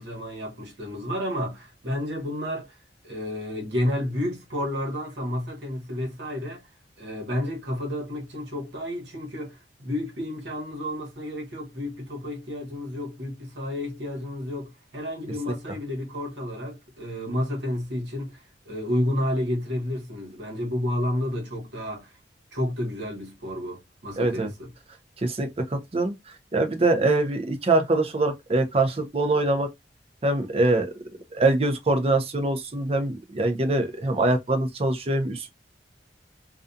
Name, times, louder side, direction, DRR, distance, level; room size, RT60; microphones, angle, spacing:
voice 1, 0.0-2.8 3.0-6.6 7.0-22.1 22.5-24.7, left 1 dB, 80° right, 1.1 m, -31 dB
voice 2, 24.2-24.5 25.2-26.1 26.5-29.7 30.2-30.9 31.3-35.5, right 2 dB, 35° right, 0.5 m, -23 dB
2.4 x 2.3 x 2.5 m
head